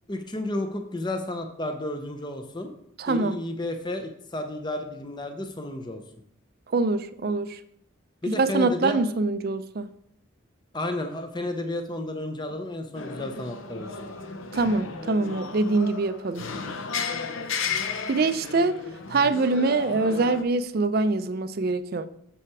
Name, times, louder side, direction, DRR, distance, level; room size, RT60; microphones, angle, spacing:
voice 1, 0.1-2.7 3.1-6.0 8.2-9.0 10.7-14.1, left 1 dB, 20° left, 6 dB, 0.6 m, -32 dB
voice 2, 3.0-3.4 6.7-7.6 8.3-9.9 14.5-16.5 18.1-18.8 19.1-22.1, right 3 dB, 45° right, 12 dB, 0.4 m, -24 dB
sound 1, 12.9-20.4, left 5 dB, 70° left, 0.7 m, -34 dB
7.0 x 5.8 x 4.7 m, 0.72 s
head